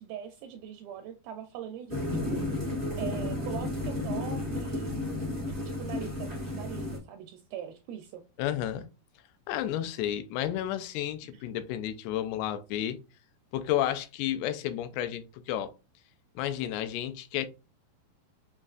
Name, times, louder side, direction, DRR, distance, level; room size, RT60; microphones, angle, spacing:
voice 1, 0.0-5.0 5.5-8.2 11.3-11.4, right 9 dB, 85° right, 2.1 m, -42 dB
sound 1, 1.9-7.0, left 2 dB, 50° right, 0.6 m, -32 dB
voice 2, 8.4-8.9 9.5-13.0 13.5-15.7 16.4-17.5, left 11 dB, 85° left, 2.6 m, -31 dB
7.3 x 2.6 x 2.4 m
omnidirectional pair, 4.6 m